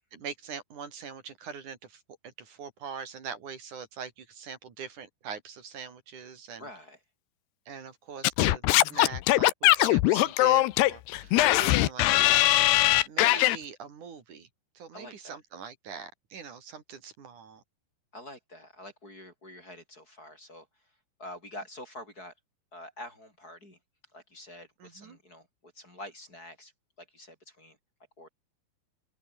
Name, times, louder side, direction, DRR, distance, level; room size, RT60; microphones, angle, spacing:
voice 1, 0.1-6.7 7.7-14.5 14.7-17.6 24.8-25.2, right 6 dB, 45° right, 3.9 m, -43 dB
voice 2, 6.6-7.0 11.2-11.6 14.9-15.4 18.1-20.9 21.2-22.3 22.7-23.8 24.1-26.7 27.0-27.8 28.2-28.3, left 1 dB, 20° left, 7.4 m, -47 dB
Singing / Scratching (performance technique), 8.2-13.6, left 17 dB, 75° left, 2.8 m, -21 dB
open air
omnidirectional pair, 5.2 m